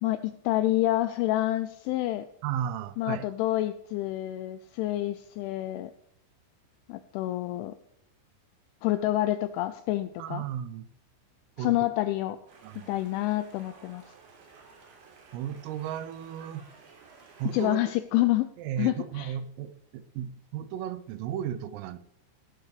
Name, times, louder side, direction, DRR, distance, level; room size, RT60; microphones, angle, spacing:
voice 1, 0.0-2.2 3.0-5.9 6.9-7.7 8.8-10.4 11.6-12.4 12.9-14.0 17.5-18.5 18.8-19.3, left 15 dB, 85° left, 11 dB, 2.7 m, -28 dB
voice 2, 2.4-3.3 10.2-10.9 11.6-11.8 12.6-12.9 15.3-16.6 17.4-17.8 18.6-22.0, right 10 dB, 85° right, 13 dB, 3.3 m, -34 dB
sound 1, 12.5-17.7, right 5 dB, 60° right, 5.2 m, -54 dB
15.0 x 12.0 x 3.3 m, 0.71 s
omnidirectional pair, 6.0 m